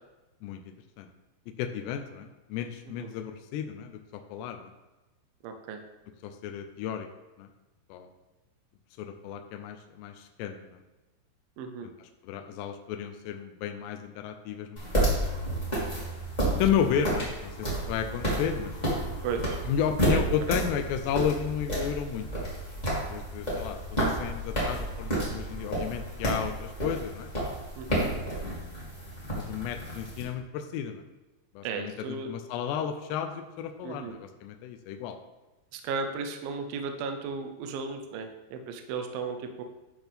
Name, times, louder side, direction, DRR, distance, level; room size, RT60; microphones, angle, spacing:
voice 1, 0.4-1.1 1.6-4.7 6.2-7.1 7.4-7.5 7.9-8.1 9.0-10.8 11.8-15.2 16.6-18.7 19.7-22.5 23.1-27.3 28.4-28.8 29.3-31.0 31.5-35.2, left 8 dB, 80° left, 6 dB, 2.5 m, -33 dB
voice 2, 5.4-5.8 11.6-11.9 19.2-19.6 20.1-20.2 27.8-28.2 31.6-32.3 33.8-34.1 35.7-39.6, right 5 dB, 90° right, 5 dB, 2.0 m, -35 dB
sound 1, 14.8-30.2, right 1 dB, 20° left, 1.2 m, -31 dB
11.0 x 6.1 x 3.5 m, 1.1 s
omnidirectional pair, 5.4 m